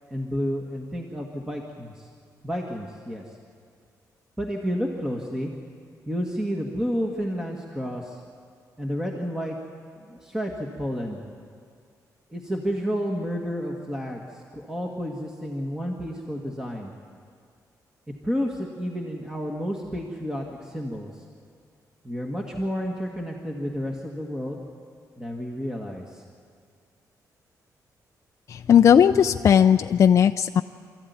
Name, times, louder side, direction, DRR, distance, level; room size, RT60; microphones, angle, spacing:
voice 1, 0.1-2.1 2.4-3.2 4.4-5.5 6.1-8.2 8.8-9.6 10.1-11.3 12.3-16.9 18.2-21.1 22.0-24.6 25.2-26.2, equal, 10° right, 0 dB, 1.6 m, -30 dB
voice 2, 28.5-30.6, left 8 dB, 45° left, 6 dB, 0.5 m, -17 dB
27.0 x 14.0 x 9.5 m, 2.2 s
wide cardioid pair, 160°, 7 cm